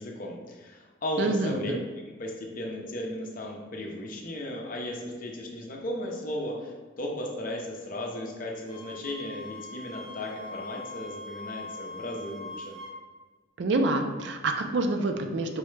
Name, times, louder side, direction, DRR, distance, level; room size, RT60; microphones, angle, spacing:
voice 1, 0.0-1.7 2.2-12.8, left 1 dB, 40° left, 0 dB, 0.5 m, -35 dB
voice 2, 1.2-1.8 13.6-15.6, right 2 dB, 60° right, 5 dB, 0.4 m, -27 dB
Wind instrument woodwind instrument, 8.7-13.0, left 2 dB, 30° right, 1.0 m, -42 dB
4.6 x 2.1 x 3.1 m, 1.4 s
head